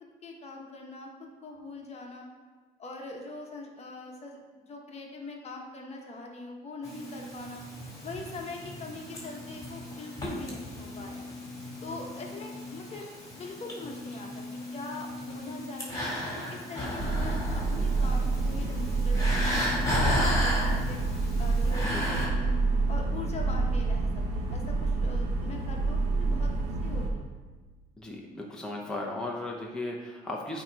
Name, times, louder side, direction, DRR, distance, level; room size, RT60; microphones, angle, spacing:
voice 1, 0.2-2.3 2.8-7.6 8.0-11.3 11.8-13.1 13.3-16.1 16.5-17.4 17.7-21.0 21.4-22.6 22.9-26.5 26.8-27.3, left 2 dB, 40° left, 0 dB, 1.1 m, -42 dB
sound 1, 6.8-22.3, left 1 dB, 20° left, 2.1 m, -34 dB
sound 2, 17.0-27.1, right 3 dB, 85° right, 1.1 m, -28 dB
voice 2, 28.0-30.6, left 2 dB, 5° left, -2 dB, 0.8 m, -36 dB
8.6 x 3.0 x 4.7 m, 1.4 s
cardioid pair, 110°, 17 cm